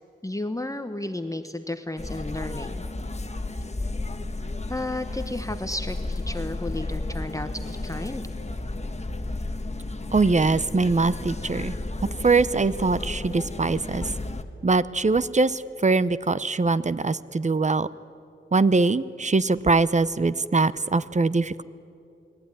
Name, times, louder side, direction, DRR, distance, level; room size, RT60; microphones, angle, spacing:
voice 1, 0.2-2.8 4.7-8.2, left 1 dB, 15° left, 8 dB, 1.1 m, -33 dB
sound 1, 2.0-14.4, left 2 dB, 30° left, 1.5 m, -33 dB
voice 2, 10.1-11.7 12.2-14.0 14.6-17.9 18.5-21.6, right 3 dB, 35° right, 16 dB, 0.7 m, -22 dB
29.5 x 20.0 x 9.9 m, 2.8 s
wide cardioid pair, 95°, 21 cm